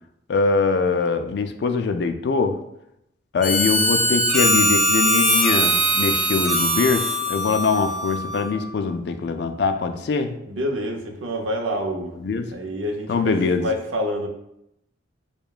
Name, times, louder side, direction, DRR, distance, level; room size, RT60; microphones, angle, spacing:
voice 1, 0.3-2.6 3.3-10.3 12.2-12.5 13.1-13.7, left 4 dB, 55° left, 7 dB, 0.3 m, -23 dB
Harmonica, 3.4-8.6, equal, ahead, 0.7 m, -21 dB
voice 2, 10.4-12.1 12.5-14.3, equal, 90° right, 3 dB, 0.6 m, -27 dB
6.6 x 2.3 x 2.3 m, 0.81 s
head